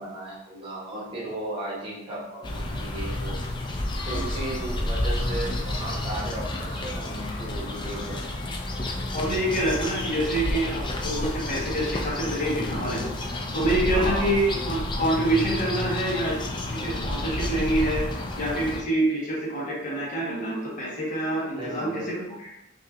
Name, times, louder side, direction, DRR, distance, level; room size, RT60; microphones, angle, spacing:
voice 1, 0.0-3.4 4.0-8.3 13.9-14.3 21.5-22.2, right 1 dB, 25° right, -5 dB, 1.1 m, -35 dB
sound 1, 2.4-18.8, left 1 dB, 25° left, 0.4 m, -30 dB
voice 2, 9.1-13.0 13.5-22.5, right 1 dB, 40° left, -5 dB, 1.4 m, -27 dB
5.5 x 2.8 x 2.5 m, 0.88 s
head